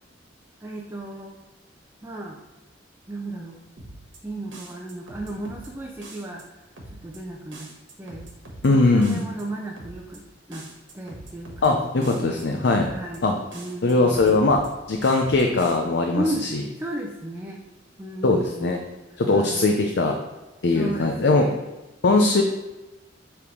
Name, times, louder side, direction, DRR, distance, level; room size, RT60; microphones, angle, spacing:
voice 1, 0.6-1.4 2.0-2.4 3.1-3.6 4.2-7.7 8.0-8.3 8.7-10.7 10.9-12.5 12.9-13.2 13.5-14.4 16.1-16.5 16.8-17.6 18.0-19.7 20.7-21.6 22.1-22.4, right 1 dB, 15° right, -2 dB, 0.6 m, -34 dB
sound 1, 3.8-4.2 4.5-5.7 6.0-6.4 6.8-7.2 7.5-8.7 9.0-9.4 9.8-10.2 10.5-11.7 12.0-12.4 12.8-13.2 13.5-14.7 15.0-15.8, right 2 dB, 85° right, 1.5 m, -42 dB
voice 2, 8.6-9.2 11.6-12.9 13.2-13.3 13.8-14.6 14.9-16.2 18.2-18.8 19.2-20.2 20.6-21.4 22.0-22.4, left 3 dB, 65° left, 3 dB, 0.6 m, -20 dB
7.3 x 3.6 x 4.7 m, 1.1 s
head